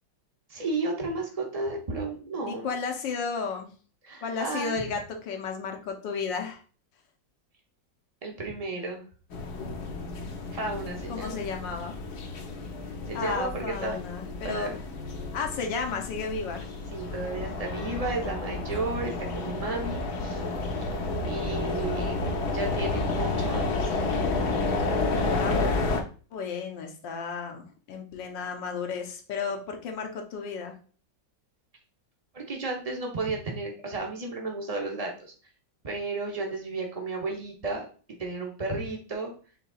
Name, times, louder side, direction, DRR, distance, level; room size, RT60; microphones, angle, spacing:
voice 1, 0.5-2.7 4.0-4.8 8.2-9.0 10.5-11.4 13.1-14.0 14.4-14.7 16.9-20.4 21.3-24.2 32.3-35.3 35.8-37.9 38.2-39.3, right 3 dB, 80° right, 0 dB, 0.3 m, -33 dB
voice 2, 2.5-3.7 4.2-6.6 11.1-11.9 13.1-14.7 15.3-16.7 25.3-25.6 26.3-30.7, left 5 dB, 80° left, 3 dB, 1.6 m, -33 dB
sound 1, 9.3-26.0, left 3 dB, 65° left, 1.2 m, -31 dB
5.8 x 3.8 x 2.3 m, 0.39 s
omnidirectional pair, 2.0 m